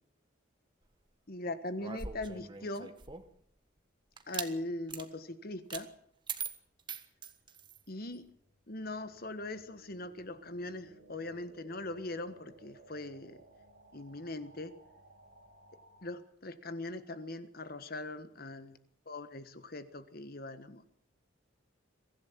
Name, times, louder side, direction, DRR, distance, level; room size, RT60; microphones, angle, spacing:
voice 1, 1.3-2.9 4.3-5.9 7.9-8.2 8.7-13.4 13.9-14.7 16.0-18.8 19.1-20.8, left 2 dB, 50° left, 11 dB, 1.5 m, -41 dB
sound 1, 1.8-3.4 4.2-4.5 4.9-5.1 5.7-5.9 6.3-7.8, right 6 dB, 25° right, 1.4 m, -41 dB
sound 2, 6.8-16.2, right 2 dB, 45° right, 6.1 m, -60 dB
23.5 x 15.0 x 7.5 m, 0.67 s
head